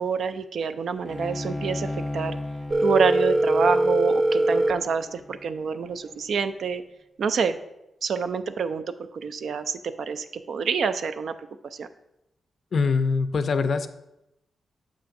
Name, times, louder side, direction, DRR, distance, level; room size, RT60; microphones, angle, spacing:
voice 1, 0.0-2.4 2.8-6.8 7.2-7.6 8.0-8.8 9.1-11.3 11.7-11.9, right 6 dB, 70° right, 11 dB, 0.4 m, -27 dB
Bowed string instrument, 1.1-6.4, left 1 dB, ahead, 0.5 m, -36 dB
Telephone, 2.7-4.7, right 1 dB, 50° right, 0.8 m, -21 dB
voice 2, 12.7-13.9, left 4 dB, 55° left, 10 dB, 0.4 m, -23 dB
7.3 x 2.6 x 5.7 m, 0.90 s
cardioid pair, 105°, 0 cm